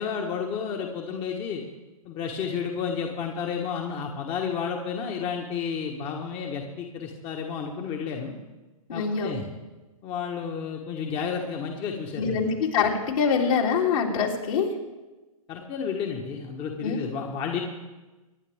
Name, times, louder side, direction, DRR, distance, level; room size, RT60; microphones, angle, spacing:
voice 1, 0.0-1.6 2.0-8.3 8.9-9.4 10.0-12.4 15.5-17.6, left 6 dB, 30° left, 2 dB, 1.5 m, -31 dB
voice 2, 8.9-9.3 12.2-14.7 16.8-17.0, left 6 dB, 65° left, -2 dB, 3.3 m, -24 dB
24.5 x 10.5 x 3.6 m, 1.1 s
hypercardioid pair, 120°, 19 cm